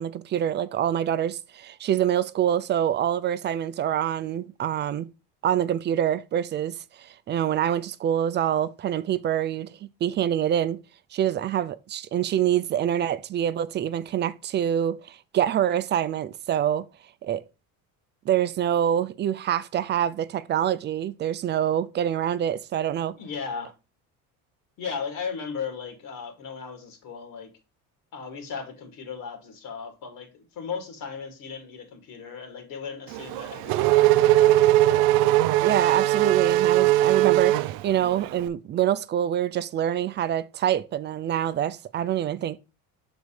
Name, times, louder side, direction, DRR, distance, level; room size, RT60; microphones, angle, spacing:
voice 1, 0.0-5.1 5.4-10.8 11.1-16.9 17.2-17.4 18.3-23.2 35.6-42.6, right 10 dB, 30° right, 0.4 m, -26 dB
voice 2, 23.1-23.7 24.8-27.5 28.1-34.8, left 6 dB, 70° left, 2.2 m, -36 dB
Race car auto racing / Accelerating revving vroom, 33.1-38.4, right 15 dB, 85° right, 0.6 m, -20 dB
6.4 x 4.1 x 5.0 m
cardioid pair, 135°, 35 cm